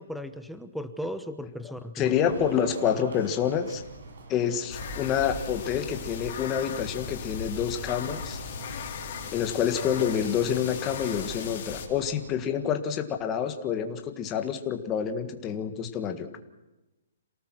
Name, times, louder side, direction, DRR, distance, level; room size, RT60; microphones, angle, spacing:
voice 1, 0.0-2.1, left 1 dB, ahead, 8 dB, 0.9 m, -36 dB
voice 2, 2.0-3.8 4.3-8.4 9.3-16.3, left 8 dB, 15° left, 6 dB, 1.6 m, -28 dB
sound 1, 2.0-12.6, right 3 dB, 60° right, 6.6 m, -45 dB
sound 2, 4.7-11.9, left 6 dB, 30° left, 3.9 m, -37 dB
28.0 x 18.5 x 6.2 m, 1.0 s
hypercardioid pair, 170°, 0 cm